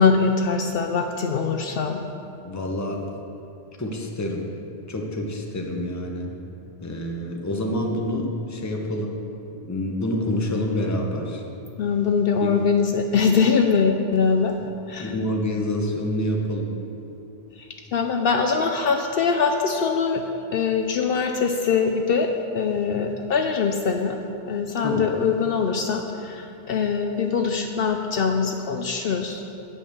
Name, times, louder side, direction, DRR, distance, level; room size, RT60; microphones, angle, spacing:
voice 1, 0.0-2.0 11.8-14.5 14.9-15.1 17.9-20.2 20.5-24.2 24.5-29.4, left 5 dB, 65° left, 4 dB, 0.7 m, -22 dB
voice 2, 2.4-3.0 3.8-4.5 4.9-6.3 6.8-9.1 9.6-11.4 12.4-12.5 14.6-14.7 15.0-16.7 24.8-25.3, left 1 dB, 20° left, 1 dB, 0.7 m, -27 dB
8.3 x 5.4 x 7.0 m, 2.7 s
omnidirectional pair, 1.1 m